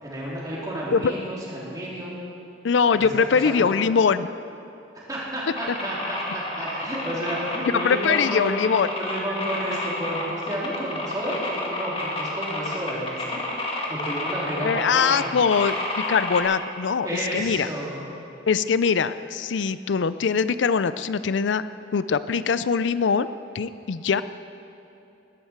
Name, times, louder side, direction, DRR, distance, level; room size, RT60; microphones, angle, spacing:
voice 1, 0.0-2.1 2.8-3.1 3.4-3.7 5.1-8.6 9.0-13.4 13.9-15.3 17.0-18.1, equal, 20° right, -6 dB, 3.7 m, -31 dB
voice 2, 2.6-4.3 7.7-8.9 14.6-17.7 18.5-21.6 21.9-23.3 23.5-24.2, left 6 dB, 90° left, 14 dB, 0.5 m, -22 dB
sound 1, 5.6-16.4, left 2 dB, 30° left, 2.1 m, -30 dB
20.5 x 12.0 x 4.6 m, 2.9 s
head